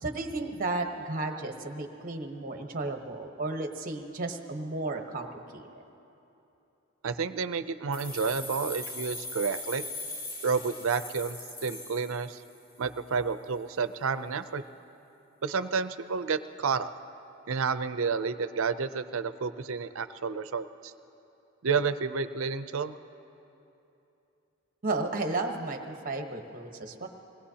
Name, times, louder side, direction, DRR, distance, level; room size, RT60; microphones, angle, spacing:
voice 1, 0.0-5.7 24.8-27.1, right 2 dB, 40° right, 4 dB, 1.1 m, -33 dB
voice 2, 7.0-9.8 10.4-12.4 12.8-14.6 15.4-16.9 17.5-20.9 21.6-23.0, right 5 dB, 70° right, 12 dB, 0.5 m, -30 dB
sound 1, 7.9-12.7, left 2 dB, 45° left, 1.6 m, -40 dB
26.0 x 19.5 x 2.8 m, 2.9 s
head